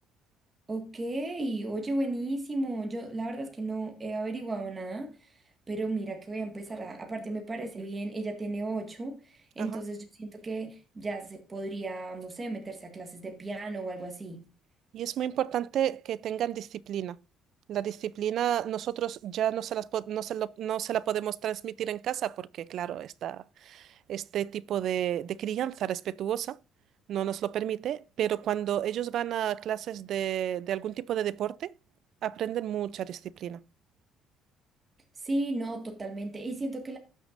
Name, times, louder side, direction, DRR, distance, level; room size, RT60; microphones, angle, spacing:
voice 1, 0.7-5.3 5.7-14.4 35.2-37.0, right 2 dB, 20° right, 1.7 m, -34 dB
voice 2, 14.9-17.2 17.7-26.6 27.1-31.7 32.2-33.6, right 11 dB, 50° right, 0.4 m, -31 dB
18.0 x 6.1 x 2.5 m
cardioid pair, 160°, 0 cm